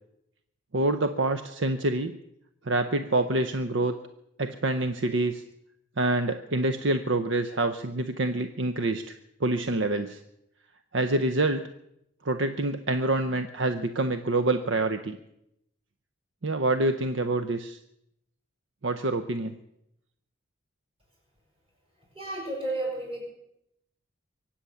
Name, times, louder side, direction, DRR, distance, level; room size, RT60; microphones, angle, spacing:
voice 1, 0.7-2.2 2.7-4.0 4.4-5.4 6.0-9.1 9.4-10.2 10.9-11.7 12.2-15.2 16.4-17.8 18.8-19.6, right 2 dB, 60° right, 9 dB, 0.7 m, -26 dB
voice 2, 22.1-23.2, right 2 dB, 25° right, -2 dB, 7.1 m, -32 dB
23.5 x 8.6 x 7.0 m, 0.80 s
head